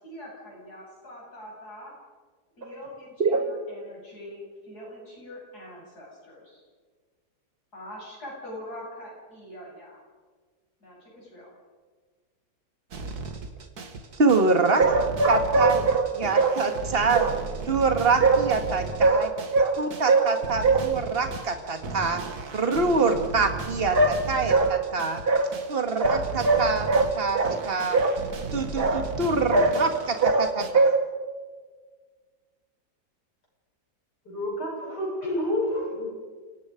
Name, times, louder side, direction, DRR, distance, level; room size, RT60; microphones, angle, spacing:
voice 1, 0.0-1.9 2.6-6.6 7.7-10.0 10.8-11.5, left 1 dB, 70° left, -3 dB, 8.5 m, -43 dB
sound 1, 12.9-30.7, right 3 dB, 65° right, 2.2 m, -36 dB
voice 2, 14.2-22.2 22.5-31.0, right 3 dB, 35° right, 6 dB, 2.1 m, -22 dB
voice 3, 34.2-36.0, left 1 dB, 85° left, -4 dB, 8.2 m, -29 dB
29.0 x 18.0 x 5.2 m, 1.5 s
omnidirectional pair, 1.8 m